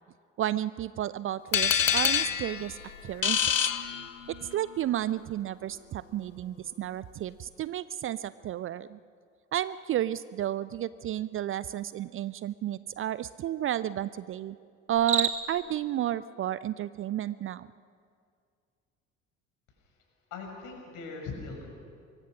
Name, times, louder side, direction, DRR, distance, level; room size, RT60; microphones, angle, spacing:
voice 1, 0.4-3.7 4.4-9.0 9.5-14.6 14.9-17.7, right 12 dB, 35° right, 17 dB, 0.5 m, -32 dB
sound 1, 1.5-4.5, left 8 dB, 85° left, 0.8 m, -27 dB
Cricket, 14.9-15.7, right 6 dB, 20° right, 2.2 m, -29 dB
voice 2, 20.3-21.7, left 4 dB, 55° left, 2 dB, 6.0 m, -40 dB
24.5 x 23.0 x 6.1 m, 2.2 s
figure-of-eight pair, 55°, 38 cm